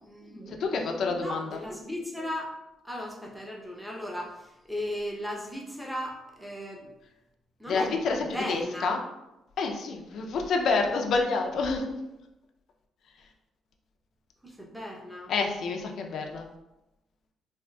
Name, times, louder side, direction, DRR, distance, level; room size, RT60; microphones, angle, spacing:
voice 1, 0.0-2.5 2.8-6.9 7.6-9.0 14.4-15.3, left 1 dB, ahead, -2 dB, 0.7 m, -37 dB
voice 2, 0.6-1.6 7.7-9.0 9.6-11.9 15.3-16.4, left 4 dB, 65° left, 2 dB, 0.4 m, -28 dB
3.6 x 2.4 x 2.2 m, 0.94 s
cardioid pair, 90°, 0 cm